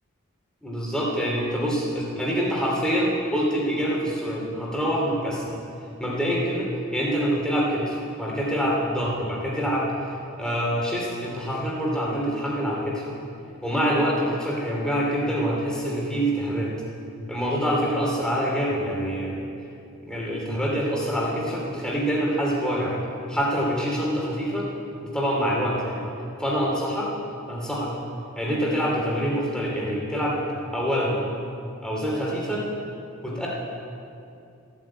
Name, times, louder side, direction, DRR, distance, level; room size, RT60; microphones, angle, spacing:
voice 1, 0.6-5.6 6.0-9.9 10.4-13.1 13.6-16.7 17.3-19.5 20.0-22.9 23.3-24.7 25.0-26.0 26.4-27.1 27.5-27.9 28.4-30.4 30.7-31.2 31.8-32.7 33.2-33.5, equal, 5° left, -5 dB, 3.0 m, -25 dB
15.0 x 8.9 x 8.5 m, 2.6 s
head